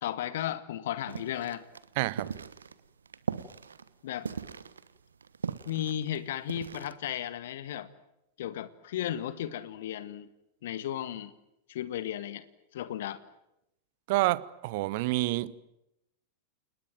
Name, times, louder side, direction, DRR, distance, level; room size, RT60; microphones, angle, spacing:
voice 1, 0.0-1.6 4.0-4.3 5.7-7.9 8.4-10.3 10.6-11.3 11.7-12.4 12.7-13.2, left 11 dB, 55° left, 1.8 m, -34 dB
sound 1, 1.1-6.9, right 6 dB, 70° right, 1.2 m, -39 dB
voice 2, 2.0-2.3 14.1-15.6, right 19 dB, 50° right, 0.9 m, -28 dB
29.0 x 20.0 x 9.2 m
figure-of-eight pair, 90°, 0 cm